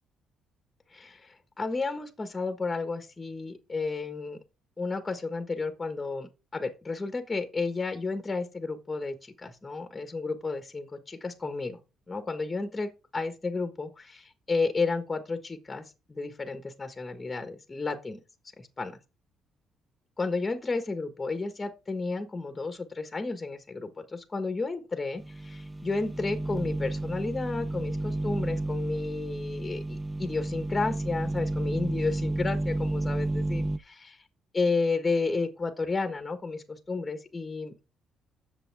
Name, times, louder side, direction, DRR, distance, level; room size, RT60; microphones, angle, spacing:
voice 1, 0.9-4.4 4.8-11.8 12.1-18.2 18.6-19.0 20.2-34.2 34.5-37.7, left 3 dB, 20° left, 1.4 m, -32 dB
sound 1, 25.2-33.8, right 2 dB, 10° right, 0.6 m, -31 dB
9.8 x 7.1 x 3.4 m
cardioid pair, 125°, 0 cm